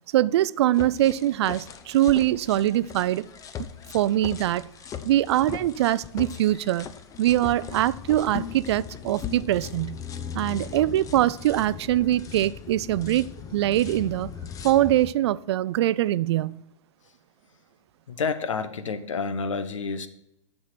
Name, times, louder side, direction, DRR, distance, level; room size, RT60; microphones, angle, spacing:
voice 1, 0.1-3.2 3.9-4.7 5.0-6.9 7.2-10.0 10.3-14.3 14.6-16.6, right 13 dB, 60° right, 0.5 m, -23 dB
sound 1, 0.7-15.1, left 8 dB, 20° left, 0.7 m, -39 dB
voice 2, 18.1-20.1, left 5 dB, 80° left, 1.1 m, -29 dB
10.5 x 6.7 x 5.9 m
hypercardioid pair, 120°, 16 cm